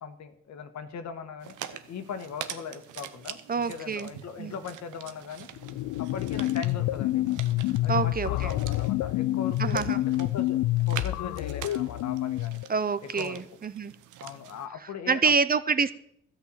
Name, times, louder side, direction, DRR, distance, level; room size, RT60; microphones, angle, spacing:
voice 1, 0.0-5.5 6.0-7.2 7.8-10.6 10.9-12.6 13.1-13.4 14.2-15.3, left 6 dB, 65° left, 9 dB, 1.4 m, -39 dB
sound 1, 1.4-14.7, right 11 dB, 85° right, 0.9 m, -44 dB
voice 2, 3.5-4.1 4.4-4.5 7.9-8.5 9.6-10.0 12.7-13.9 15.1-15.9, right 5 dB, 30° right, 14 dB, 0.6 m, -27 dB
sound 2, 5.6-12.7, left 16 dB, 90° left, 0.5 m, -28 dB
13.0 x 5.7 x 8.4 m, 0.71 s
cardioid pair, 90°, 30 cm